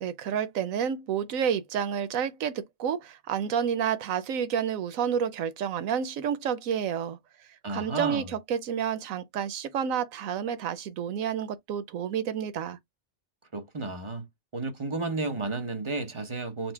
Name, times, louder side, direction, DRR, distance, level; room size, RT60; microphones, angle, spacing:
voice 1, 0.0-7.2 7.7-12.8, right 8 dB, 90° right, 1.1 m, -30 dB
voice 2, 7.6-8.3 13.5-14.3 14.5-16.7, right 3 dB, 30° right, 0.7 m, -32 dB
4.1 x 2.1 x 4.4 m
omnidirectional pair, 1.4 m